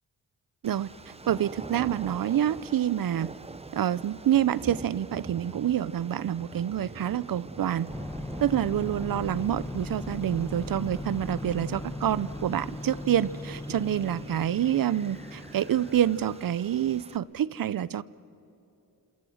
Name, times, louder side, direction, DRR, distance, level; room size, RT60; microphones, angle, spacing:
sound 1, 0.6-17.2, right 3 dB, 15° right, 0.6 m, -45 dB
voice 1, 1.3-3.3 3.7-7.9 8.4-18.0, right 10 dB, 65° right, 19 dB, 0.6 m, -27 dB
sound 2, 7.9-16.5, left 1 dB, 5° left, 0.9 m, -38 dB
28.0 x 27.0 x 6.4 m, 2.9 s
wide cardioid pair, 115°, 37 cm